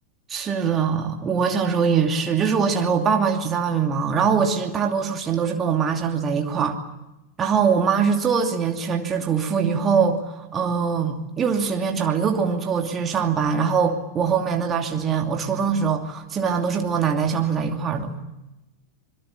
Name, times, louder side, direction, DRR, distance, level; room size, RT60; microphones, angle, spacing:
voice 1, 0.3-6.8 7.4-18.1, right 6 dB, 25° right, 3 dB, 2.6 m, -22 dB
25.5 x 23.0 x 8.7 m, 0.95 s
figure-of-eight pair, 90°, 0 cm